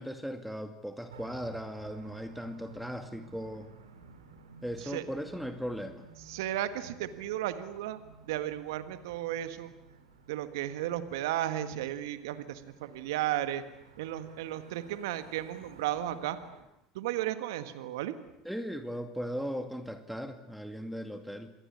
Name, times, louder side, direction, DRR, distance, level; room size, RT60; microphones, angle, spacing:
voice 1, 0.0-3.7 4.6-6.0 18.4-21.5, equal, ahead, 7 dB, 2.3 m, -38 dB
sound 1, 1.1-16.6, right 4 dB, 90° right, 3.8 m, -54 dB
voice 2, 6.3-9.7 10.3-13.6 14.0-16.4 17.0-18.1, right 13 dB, 75° right, 11 dB, 1.7 m, -34 dB
27.0 x 21.0 x 8.7 m, 0.83 s
hypercardioid pair, 75°, 2 cm